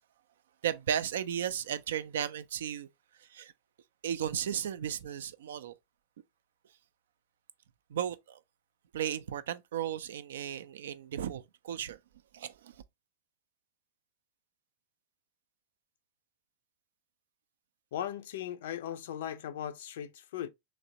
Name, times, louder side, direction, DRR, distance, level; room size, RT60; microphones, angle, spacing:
voice 1, 0.6-2.9 3.3-3.5 4.0-5.7 7.9-8.4 8.9-12.0 12.3-12.7, right 9 dB, 60° right, 0.3 m, -35 dB
voice 2, 17.9-20.5, left 10 dB, 55° left, 0.4 m, -38 dB
3.2 x 3.1 x 2.7 m
figure-of-eight pair, 90°, 0 cm